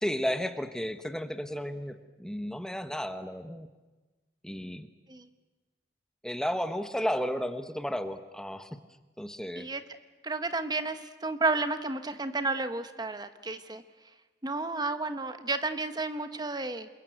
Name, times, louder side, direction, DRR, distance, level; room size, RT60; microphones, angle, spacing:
voice 1, 0.0-3.7 4.4-4.9 6.2-8.8 9.2-9.7, equal, 5° left, 9 dB, 1.2 m, -33 dB
voice 2, 10.2-13.8 14.4-16.9, right 3 dB, 25° right, 9 dB, 1.2 m, -32 dB
28.0 x 22.5 x 9.4 m, 1.2 s
head